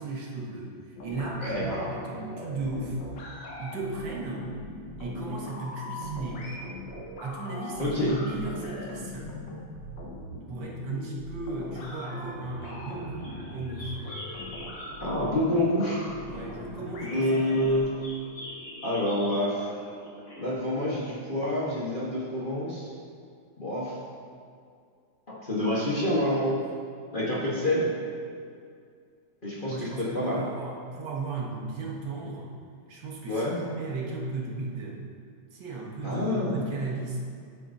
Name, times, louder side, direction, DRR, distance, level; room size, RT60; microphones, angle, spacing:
voice 1, 0.0-3.0 3.6-4.5 5.0-6.5 7.2-9.3 10.5-14.1 16.2-18.0 29.6-32.5 32.9-35.0 35.5-37.2, right 3 dB, 70° right, -2 dB, 1.8 m, -35 dB
sound 1, 1.0-17.8, left 1 dB, 70° left, 1.8 m, -40 dB
voice 2, 1.4-1.9 7.8-8.1 15.0-16.0 17.1-17.9 18.8-19.7 20.4-22.9 23.6-24.0 25.3-26.6 27.1-27.9 29.4-30.4 33.3-33.6 36.0-36.8, left 1 dB, 30° left, -7 dB, 1.1 m, -27 dB
sound 2, 12.6-20.5, left 1 dB, 50° left, 2.5 m, -45 dB
10.0 x 8.5 x 2.7 m, 2.3 s
omnidirectional pair, 2.1 m